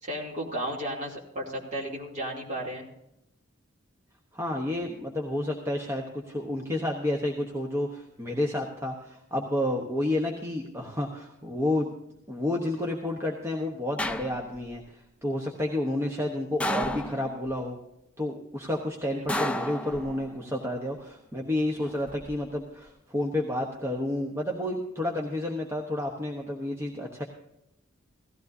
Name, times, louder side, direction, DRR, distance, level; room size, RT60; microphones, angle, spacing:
voice 1, 0.0-2.9 19.1-19.6, equal, 35° right, -3 dB, 2.8 m, -34 dB
voice 2, 4.3-11.9 12.3-17.8 18.2-27.2, left 1 dB, 10° right, 0 dB, 1.0 m, -30 dB
sound 1, 14.0-14.8 16.6-17.5 19.3-20.4 21.8-22.4, left 1 dB, 5° left, 0.4 m, -32 dB
17.0 x 14.5 x 2.7 m, 0.84 s
head